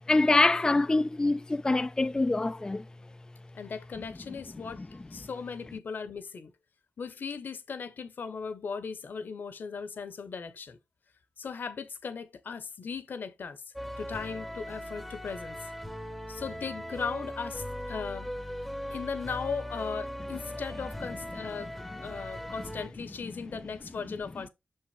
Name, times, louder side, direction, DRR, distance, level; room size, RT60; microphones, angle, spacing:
voice 1, 0.1-2.8, left 2 dB, 20° left, 0.3 m, -24 dB
voice 2, 3.5-6.5 7.0-10.8 11.4-13.6 14.0-15.6 16.3-18.3 18.9-24.5, left 5 dB, 70° left, 1.0 m, -38 dB
sound 1, 13.8-22.9, equal, ahead, 0.9 m, -39 dB
6.3 x 5.7 x 3.2 m
cardioid pair, 70°, 4 cm